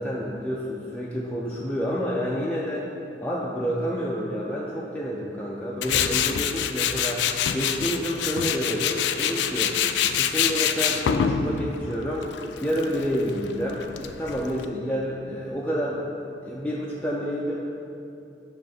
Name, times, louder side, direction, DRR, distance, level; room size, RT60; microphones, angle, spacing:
voice 1, 0.0-2.9 3.2-12.3 12.6-16.0 16.4-17.6, equal, 10° left, -5 dB, 0.4 m, -29 dB
Tools, 5.8-14.6, left 8 dB, 80° left, 0.3 m, -26 dB
7.7 x 3.2 x 5.2 m, 2.6 s
head